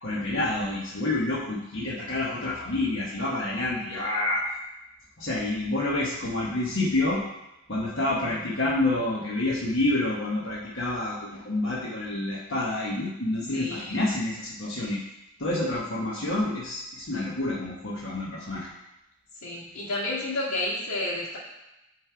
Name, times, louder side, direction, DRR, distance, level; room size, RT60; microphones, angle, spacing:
voice 1, 0.0-4.4 5.2-7.2 7.7-15.0 15.4-18.7, left 2 dB, 60° left, -6 dB, 1.1 m, -28 dB
voice 2, 13.5-14.1 19.4-21.4, left 2 dB, 80° left, -11 dB, 1.8 m, -31 dB
9.1 x 3.3 x 4.6 m, 0.92 s
head